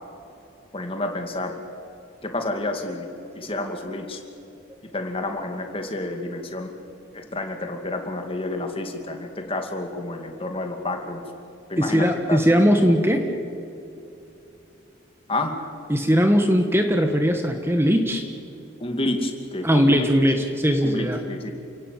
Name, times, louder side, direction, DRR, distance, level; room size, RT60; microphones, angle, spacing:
voice 1, 0.7-1.6 2.2-3.1 3.3-4.2 4.9-6.8 7.1-11.2 11.7-12.4 15.3-15.6 18.8-20.1 20.8-21.5, left 2 dB, 30° left, 4 dB, 2.4 m, -29 dB
voice 2, 11.8-13.3 15.9-18.2 19.6-21.2, equal, 10° right, 5 dB, 1.4 m, -19 dB
29.0 x 17.5 x 9.2 m, 2.8 s
head